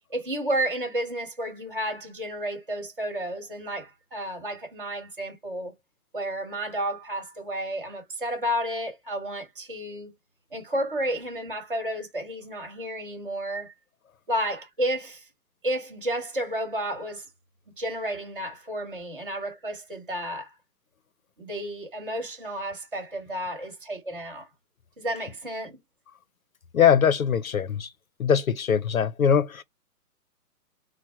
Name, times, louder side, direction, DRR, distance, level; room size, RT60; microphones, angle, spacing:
voice 1, 0.1-5.7 6.1-10.1 10.5-13.7 14.3-15.3 15.6-17.3 17.8-20.6 21.4-24.5 25.0-25.8, right 1 dB, 35° right, 1.6 m, -31 dB
voice 2, 26.7-27.9 28.2-29.6, left 7 dB, 60° left, 0.5 m, -22 dB
4.4 x 2.1 x 4.5 m
hypercardioid pair, 180°, 47 cm